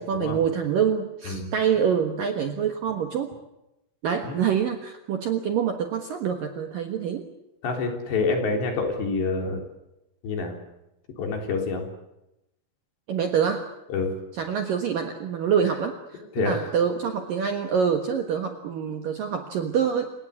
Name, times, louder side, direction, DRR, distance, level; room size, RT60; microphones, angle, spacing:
voice 1, 0.0-3.3 4.0-7.3 13.1-13.7 14.3-20.1, right 7 dB, 65° right, 5 dB, 2.4 m, -26 dB
voice 2, 7.6-9.6 10.2-10.6 11.2-11.8 13.9-14.1 16.4-16.7, left 4 dB, 60° left, 3 dB, 5.8 m, -27 dB
28.5 x 18.0 x 8.4 m, 0.90 s
omnidirectional pair, 5.7 m